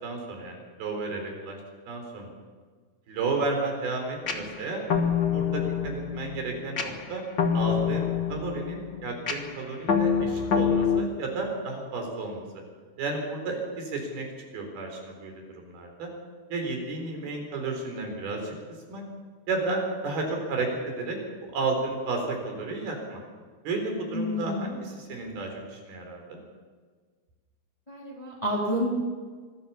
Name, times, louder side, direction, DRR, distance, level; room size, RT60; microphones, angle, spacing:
voice 1, 0.0-1.6 1.9-2.3 3.1-4.8 5.3-7.2 7.5-12.4 13.0-14.3 14.5-16.1 16.5-18.5 18.9-19.0 19.5-23.2 23.6-26.4, right 3 dB, 75° right, 2 dB, 6.0 m, -32 dB
sound 1, 4.3-11.0, left 7 dB, 70° left, 1.0 m, -27 dB
voice 2, 24.1-24.8 27.9-28.9, equal, 10° left, -4 dB, 3.6 m, -29 dB
24.0 x 15.5 x 7.2 m, 1.5 s
omnidirectional pair, 4.5 m